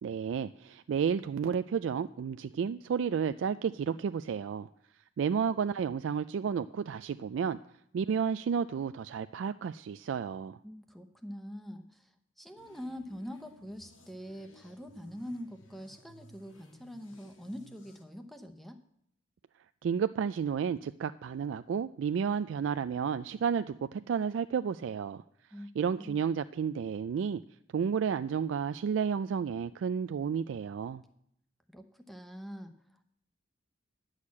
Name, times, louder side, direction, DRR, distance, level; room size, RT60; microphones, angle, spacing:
voice 1, 0.0-4.7 5.2-7.6 7.9-10.6 19.8-25.2 25.8-27.4 27.7-31.0, right 7 dB, 75° right, 12 dB, 0.3 m, -31 dB
voice 2, 10.6-12.1 12.4-18.8 25.5-25.7 26.0-26.3 31.7-32.7, equal, ahead, 7 dB, 0.8 m, -44 dB
sound 1, 12.6-18.0, left 1 dB, 90° left, 1.8 m, -58 dB
9.9 x 6.5 x 8.5 m, 0.75 s
head